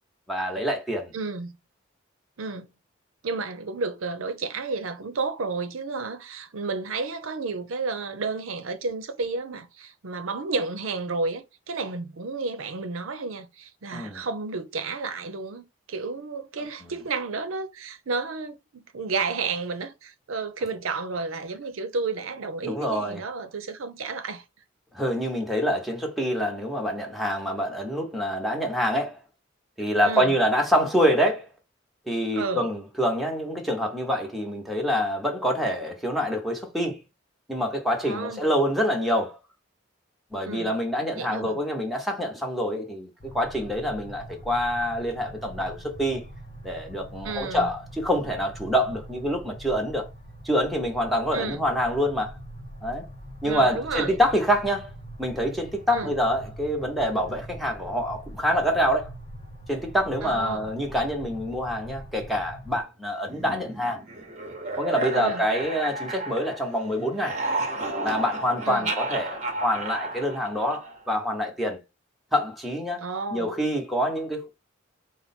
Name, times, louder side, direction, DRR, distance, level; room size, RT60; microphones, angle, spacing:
voice 1, 0.3-1.1 13.9-14.2 16.8-16.9 22.6-23.2 24.9-29.2 29.8-31.5 32.1-37.0 37.5-39.4 40.3-43.1 43.3-46.2 46.6-50.1 50.4-52.3 52.8-53.0 53.4-54.9 55.2-59.1 59.7-64.0 64.8-67.4 68.0-71.8 72.3-74.5, equal, ahead, 0.9 m, -26 dB
voice 2, 1.1-1.5 2.4-2.7 3.2-24.4 30.0-30.3 32.3-32.7 38.0-38.5 40.5-40.7 41.2-41.6 47.2-47.7 51.3-51.6 53.4-54.2 55.9-56.1 60.2-60.7 65.2-65.4 68.7-68.9 73.0-73.5, right 4 dB, 85° right, 0.6 m, -31 dB
sound 1, 43.2-62.8, right 1 dB, 35° left, 1.2 m, -43 dB
sound 2, 63.3-66.8 67.1-71.1, right 2 dB, 35° right, 0.8 m, -32 dB
4.4 x 2.1 x 4.2 m
head